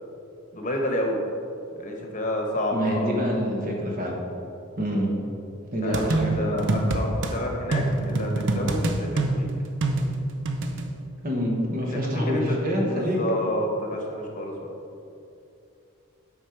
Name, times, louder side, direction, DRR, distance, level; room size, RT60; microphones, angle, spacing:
voice 1, 0.5-1.2 1.8-3.1 5.8-9.5 11.9-12.0 12.3-12.4 12.8-14.5, left 1 dB, 35° left, 1 dB, 1.0 m, -29 dB
voice 2, 2.7-4.1 4.8-5.1 5.7-6.4 11.2-13.2, equal, 45° right, -1 dB, 1.4 m, -26 dB
sound 1, 5.9-7.3 7.7-10.8, right 2 dB, 60° right, 0.6 m, -25 dB
8.6 x 5.3 x 4.5 m, 2.7 s
head